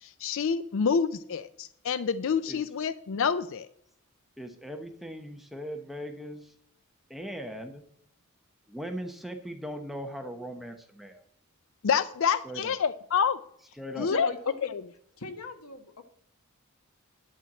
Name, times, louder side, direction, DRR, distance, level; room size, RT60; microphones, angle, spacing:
voice 1, 0.0-3.7 11.8-13.4 13.9-14.3, left 6 dB, 60° left, 14 dB, 0.4 m, -27 dB
voice 2, 4.4-6.5 7.1-7.8 8.7-11.2 12.4-12.7 13.8-14.1, equal, ahead, 4 dB, 0.9 m, -39 dB
voice 3, 14.0-14.7 15.2-16.0, left 2 dB, 80° left, 7 dB, 1.3 m, -38 dB
11.0 x 4.5 x 7.4 m, 0.71 s
head